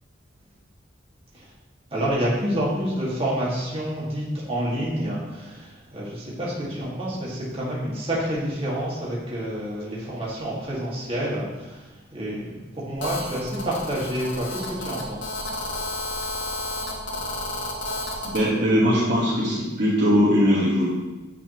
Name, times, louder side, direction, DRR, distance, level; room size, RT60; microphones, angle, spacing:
voice 1, 1.9-15.4, equal, 30° right, -7 dB, 1.8 m, -28 dB
Telephone, 13.0-18.4, left 1 dB, 75° left, 1.0 m, -31 dB
voice 2, 18.2-20.9, equal, 60° right, -7 dB, 1.4 m, -20 dB
8.6 x 4.0 x 2.9 m, 1.2 s
head